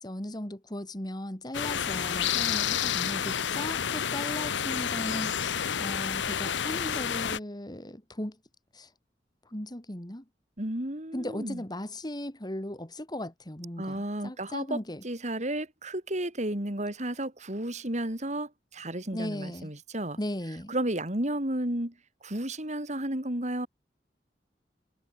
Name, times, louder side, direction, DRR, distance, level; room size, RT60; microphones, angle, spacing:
voice 1, 0.0-8.4 8.7-8.9 9.5-10.2 11.1-15.0 19.1-19.7 20.2-20.7, left 1 dB, 25° left, 3.1 m, -37 dB
sound 1, 1.5-7.4, left 8 dB, 90° left, 0.8 m, -30 dB
voice 2, 10.6-11.6 13.8-14.8 15.0-20.2 20.7-21.9 22.2-23.7, right 1 dB, 40° right, 4.1 m, -32 dB
head